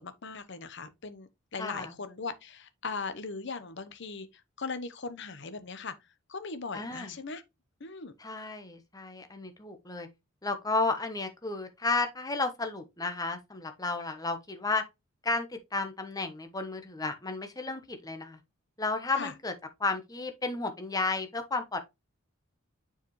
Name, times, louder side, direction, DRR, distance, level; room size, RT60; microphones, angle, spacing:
voice 1, 0.0-4.3 4.6-5.9 6.3-7.4 7.8-8.1 19.2-19.3, left 4 dB, 55° left, 0.9 m, -39 dB
voice 2, 1.6-1.9 6.7-7.1 8.2-10.1 10.4-14.8 15.2-18.4 18.8-19.5 19.8-21.8, left 3 dB, 15° left, 1.0 m, -32 dB
6.7 x 4.9 x 3.1 m
head